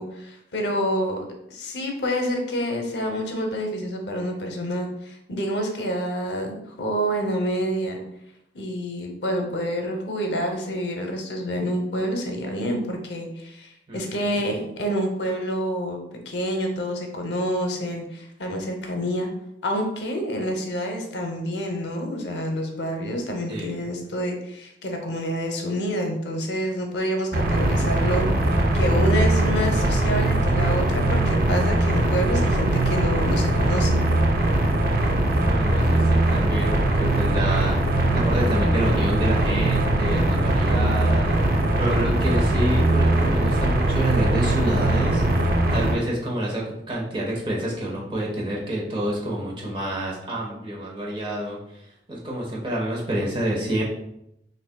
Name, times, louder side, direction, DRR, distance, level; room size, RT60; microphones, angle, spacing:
voice 1, 0.0-8.0 8.5-16.0 16.3-19.3 19.6-33.9, equal, 70° left, 3 dB, 0.7 m, -28 dB
voice 2, 13.9-14.5 23.5-23.9 35.4-37.8 38.1-41.4 41.8-51.8 52.1-53.8, right 1 dB, 30° right, -3 dB, 1.1 m, -28 dB
sound 1, 27.3-45.9, right 1 dB, 55° right, 0.5 m, -21 dB
6.1 x 2.5 x 2.2 m, 0.81 s
head